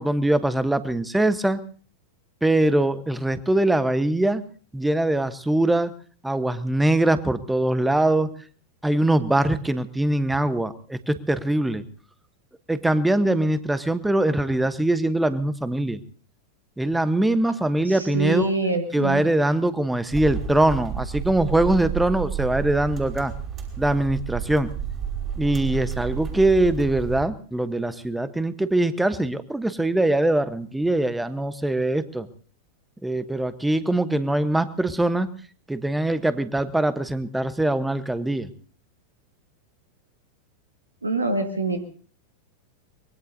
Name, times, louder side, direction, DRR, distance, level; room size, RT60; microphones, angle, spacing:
voice 1, 0.0-1.6 2.4-4.4 4.7-5.9 6.2-8.3 8.8-11.8 12.7-16.0 16.8-18.5 18.9-23.3 23.8-24.7 25.4-32.3 33.0-35.3 35.7-38.5, right 1 dB, 5° right, 14 dB, 1.0 m, -22 dB
voice 2, 17.9-19.2 41.0-41.8, right 3 dB, 80° right, 7 dB, 1.7 m, -25 dB
sound 1, 20.1-27.3, right 8 dB, 30° right, 4.7 m, -31 dB
24.0 x 21.0 x 2.7 m, 0.42 s
figure-of-eight pair, 90°, 0 cm